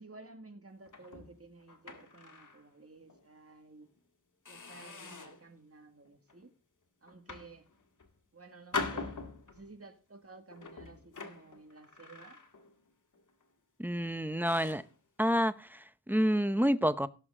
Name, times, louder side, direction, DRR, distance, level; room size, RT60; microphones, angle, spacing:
voice 1, 0.0-3.9 4.5-6.5 7.0-7.6 8.3-9.2 9.5-12.4, right 3 dB, 50° right, 2.1 m, -54 dB
sound 1, 0.9-2.6 3.1-3.3 3.8-4.0 4.5-5.5 6.0-6.4 7.1-8.1 8.7-9.7 10.5-12.9 13.1-13.4 14.0-14.1 14.4-14.9, left 4 dB, 80° left, 1.8 m, -43 dB
voice 2, 13.8-14.8 15.2-17.1, equal, 5° right, 0.8 m, -29 dB
17.0 x 6.9 x 3.7 m
wide cardioid pair, 60°, 31 cm